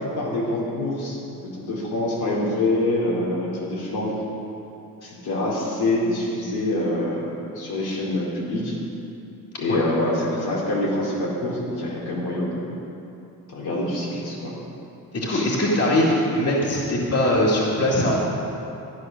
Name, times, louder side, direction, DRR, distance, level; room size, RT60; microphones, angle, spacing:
voice 1, 0.0-4.2 5.0-8.8 9.6-12.7 13.5-14.5 15.3-15.5, left 1 dB, 90° left, -5 dB, 3.8 m, -26 dB
voice 2, 15.1-18.2, left 1 dB, 40° left, -4 dB, 2.3 m, -21 dB
13.5 x 10.5 x 6.4 m, 2.8 s
cardioid pair, 135°, 37 cm